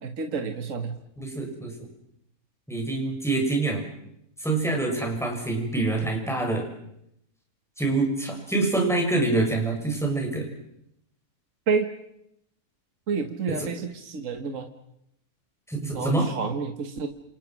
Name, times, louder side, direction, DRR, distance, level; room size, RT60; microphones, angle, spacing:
voice 1, 0.0-1.0 11.7-11.9 13.1-14.7 15.9-17.1, right 5 dB, 55° right, 6 dB, 1.9 m, -29 dB
voice 2, 1.2-1.7 2.7-3.8 4.4-6.6 7.8-10.5 13.5-13.7 15.7-16.3, right 2 dB, ahead, 1 dB, 7.1 m, -26 dB
29.5 x 28.5 x 6.2 m, 0.79 s
omnidirectional pair, 1.7 m